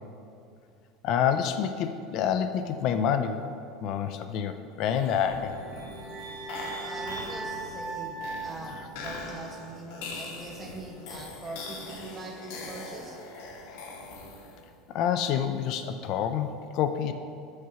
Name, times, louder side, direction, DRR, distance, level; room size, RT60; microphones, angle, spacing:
voice 1, 1.0-3.4 3.8-5.5 14.9-17.1, left 8 dB, 55° left, 9 dB, 0.4 m, -27 dB
sound 1, 4.8-14.7, left 3 dB, 75° left, 1.5 m, -42 dB
sound 2, 5.4-9.6, right 3 dB, 40° right, 1.2 m, -39 dB
voice 2, 6.8-13.2, right 2 dB, 25° right, 1 dB, 1.3 m, -42 dB
6.5 x 5.9 x 6.8 m, 2.5 s
supercardioid pair, 135°, 0 cm